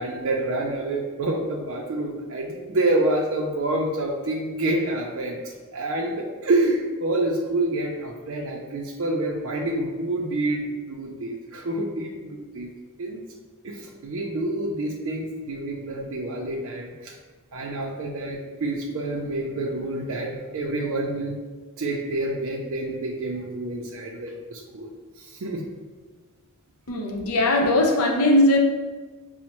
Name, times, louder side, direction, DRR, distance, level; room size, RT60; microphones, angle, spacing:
voice 1, 0.0-5.4 5.7-12.7 13.0-13.2 13.6-17.1 17.5-21.4 21.8-24.9 25.2-25.6, right 2 dB, 65° right, -2 dB, 0.4 m, -27 dB
voice 2, 26.9-28.6, left 1 dB, 90° left, 2 dB, 0.6 m, -19 dB
5.1 x 2.1 x 2.9 m, 1.3 s
head